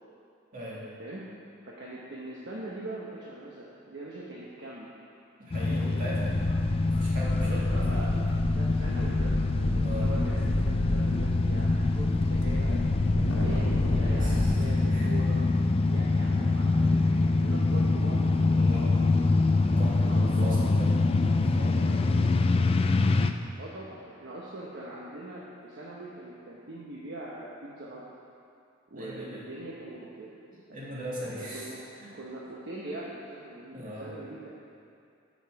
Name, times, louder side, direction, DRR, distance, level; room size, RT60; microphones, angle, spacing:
voice 1, 0.5-0.9 5.4-8.0 9.8-10.1 14.2-14.6 14.9-15.1 18.6-18.9 19.6-22.4 28.9-29.6 30.0-30.1 30.5-31.7 32.0-32.1 33.7-34.2, equal, 45° right, -6 dB, 2.4 m, -40 dB
voice 2, 1.6-4.9 7.4-8.3 8.5-12.9 13.3-15.4 15.9-19.3 19.7-20.6 23.5-28.0 28.9-30.3 31.2-31.8 32.1-34.5, right 2 dB, 60° right, -5 dB, 1.1 m, -42 dB
sound 1, 5.5-23.3, left 3 dB, 30° left, 0.3 m, -25 dB
sound 2, 5.6-5.8 6.1-14.6, left 1 dB, 80° left, 1.3 m, -31 dB
10.0 x 7.3 x 4.7 m, 2.5 s
head